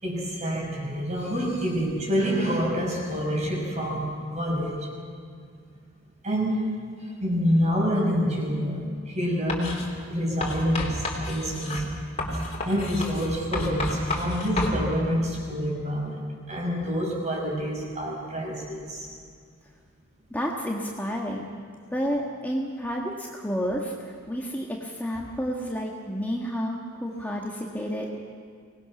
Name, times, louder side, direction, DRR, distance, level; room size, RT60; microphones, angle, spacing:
voice 1, 0.0-4.9 6.2-6.7 7.2-11.9 12.3-16.2 16.5-19.1, equal, 35° right, -1 dB, 6.3 m, -27 dB
Writing, 9.5-9.9 10.4-14.8, left 1 dB, 35° left, 3.3 m, -30 dB
voice 2, 20.3-21.5 21.9-28.2, equal, 10° left, -2 dB, 1.6 m, -30 dB
24.5 x 19.5 x 6.1 m, 2.1 s
head